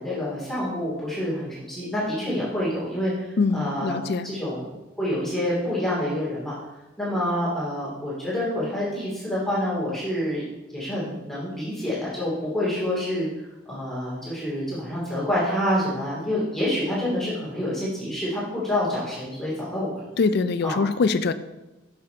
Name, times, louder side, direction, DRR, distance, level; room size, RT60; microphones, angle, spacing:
voice 1, 0.0-4.0 4.2-6.6 7.0-10.4 10.7-20.0 20.6-20.8, left 1 dB, ahead, -8 dB, 2.5 m, -27 dB
voice 2, 3.4-4.3 20.2-21.3, left 4 dB, 60° left, 12 dB, 0.4 m, -23 dB
6.7 x 5.8 x 4.4 m, 1.0 s
head